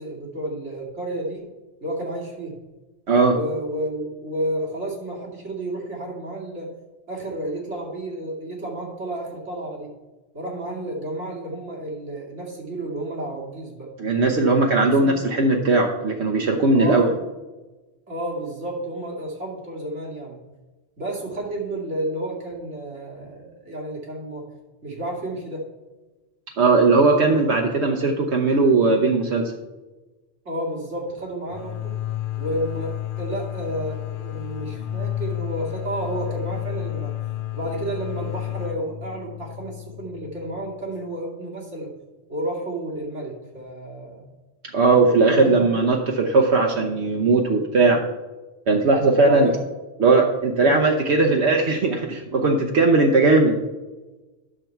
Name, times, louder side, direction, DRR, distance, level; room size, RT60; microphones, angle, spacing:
voice 1, 0.0-1.4 1.8-2.6 3.3-6.7 7.1-9.9 10.3-13.9 14.8-15.1 16.7-17.2 18.1-20.4 21.0-24.4 24.8-25.6 30.5-32.0 32.4-37.1 37.5-41.9 42.3-44.2 45.2-45.7 49.2-49.6 50.6-50.8, right 1 dB, 90° right, -3 dB, 2.5 m, -31 dB
voice 2, 3.1-3.4 14.0-17.1 26.6-29.5 44.7-48.0 48.7-49.5 50.0-53.6, right 3 dB, 70° right, 1 dB, 1.1 m, -18 dB
sound 1, 31.5-41.0, left 13 dB, 60° left, 0.6 m, -31 dB
10.0 x 6.7 x 4.5 m, 1.2 s
omnidirectional pair, 1.2 m